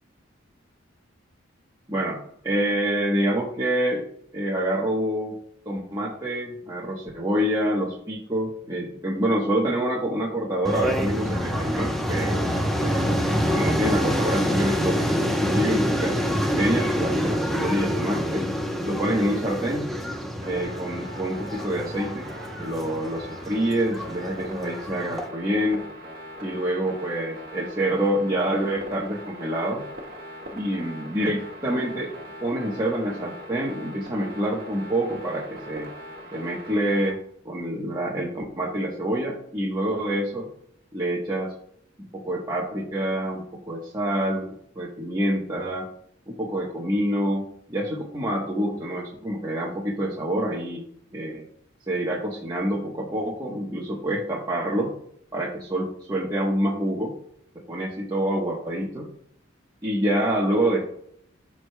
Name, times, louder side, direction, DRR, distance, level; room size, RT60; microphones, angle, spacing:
voice 1, 2.4-4.0 4.3-5.4 5.7-12.5 12.8-13.1 13.5-18.4 18.8-19.9 20.4-22.3 22.6-25.8 26.4-29.8 30.5-32.1 32.4-35.9 36.3-37.2 37.4-40.5 40.9-41.5 42.0-44.4 44.7-45.9 46.3-50.8 51.1-51.5 51.9-54.9 55.3-57.1 57.7-59.1 59.8-60.9, right 1 dB, 20° right, -4 dB, 1.0 m, -27 dB
sound 1, 10.6-25.3, equal, ahead, 0.8 m, -27 dB
sound 2, 20.4-37.1, equal, 45° right, 1.5 m, -41 dB
12.5 x 4.8 x 2.2 m, 0.68 s
head